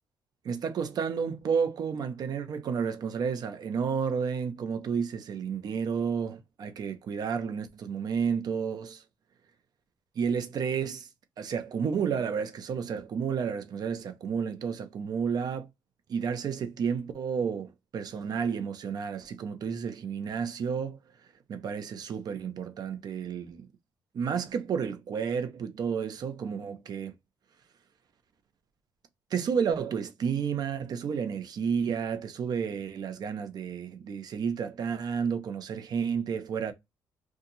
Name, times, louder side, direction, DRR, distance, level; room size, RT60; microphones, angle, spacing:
voice 1, 0.4-9.0 10.2-11.1 11.4-15.7 16.1-21.0 21.5-23.7 24.1-27.1 29.3-36.7, right 6 dB, 60° right, 0.8 m, -31 dB
2.8 x 2.4 x 4.0 m
cardioid pair, 95°, 8 cm